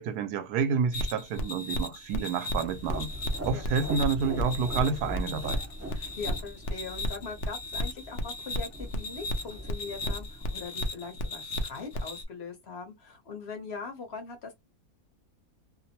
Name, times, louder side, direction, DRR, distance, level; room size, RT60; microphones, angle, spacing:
voice 1, 0.0-3.1 3.4-5.7, right 6 dB, 85° right, 1.1 m, -29 dB
sound 1, 0.9-12.2, left 1 dB, 75° left, 0.5 m, -34 dB
sound 2, 2.6-10.6, equal, 15° right, 0.7 m, -40 dB
voice 2, 3.5-3.9 5.9-14.5, left 4 dB, 50° left, 1.0 m, -41 dB
2.8 x 2.0 x 2.8 m
omnidirectional pair, 1.6 m